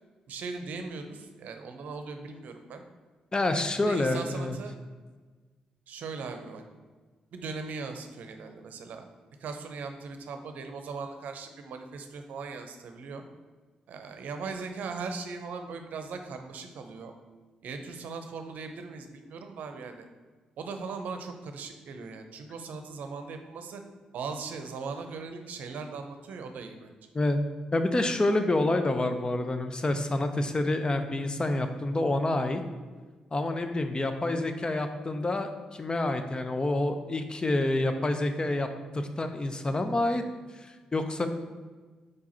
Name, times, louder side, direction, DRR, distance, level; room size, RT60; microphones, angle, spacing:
voice 1, 0.3-2.8 3.8-4.7 5.9-6.6 7.3-9.0 9.4-13.2 13.9-17.1 17.6-20.1 20.6-23.8 24.1-26.9, right 4 dB, 70° right, 6 dB, 0.7 m, -39 dB
voice 2, 3.3-4.6 27.1-27.4 27.7-32.6 33.3-38.7 38.9-40.2 40.5-41.3, left 2 dB, 30° left, 7 dB, 0.7 m, -28 dB
4.8 x 4.7 x 4.3 m, 1.4 s
hypercardioid pair, 45°, 3 cm